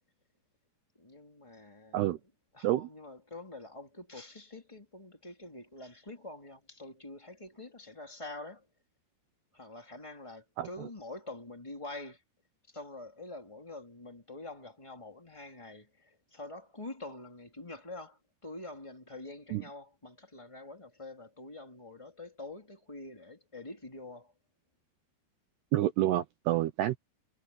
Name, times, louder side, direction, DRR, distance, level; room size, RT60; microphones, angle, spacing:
voice 1, 1.0-2.2 2.5-8.7 9.5-12.2 12.7-24.3, left 2 dB, 10° left, 2.4 m, -46 dB
voice 2, 25.7-27.0, right 14 dB, 80° right, 2.4 m, -28 dB
omnidirectional pair, 5.8 m